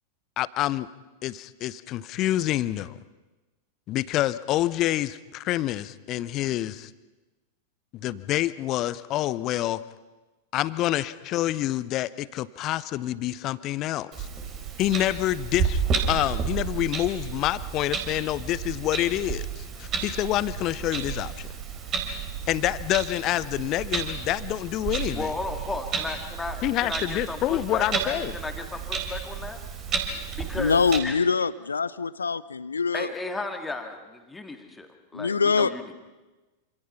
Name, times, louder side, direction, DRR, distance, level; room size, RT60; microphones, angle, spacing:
voice 1, 0.4-0.9 1.2-3.0 3.9-6.9 7.9-9.8 10.5-14.3 14.8-21.5 22.5-25.3 26.6-28.4, left 14 dB, 35° left, 17 dB, 0.8 m, -27 dB
Clock, 14.1-31.0, right 6 dB, 30° right, 3.9 m, -32 dB
voice 2, 25.1-29.6 30.3-31.2 32.9-35.9, left 3 dB, 10° left, 5 dB, 2.4 m, -35 dB
voice 3, 30.6-33.1 35.1-35.7, left 5 dB, 75° left, 19 dB, 0.7 m, -24 dB
27.5 x 26.0 x 5.8 m, 1.2 s
figure-of-eight pair, 90°, 0 cm